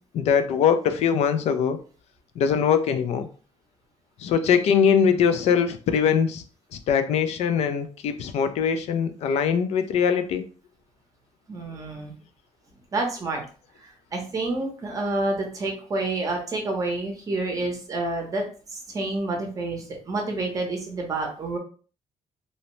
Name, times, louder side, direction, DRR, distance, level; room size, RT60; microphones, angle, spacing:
voice 1, 0.1-1.8 2.4-3.3 4.2-6.4 6.9-10.4, left 7 dB, 65° left, 9 dB, 0.4 m, -22 dB
voice 2, 11.5-12.1 12.9-13.4 13.8-18.4 18.7-21.6, right 2 dB, 30° right, 1 dB, 0.7 m, -28 dB
2.7 x 2.1 x 3.0 m, 0.39 s
cardioid pair, 175°, 12 cm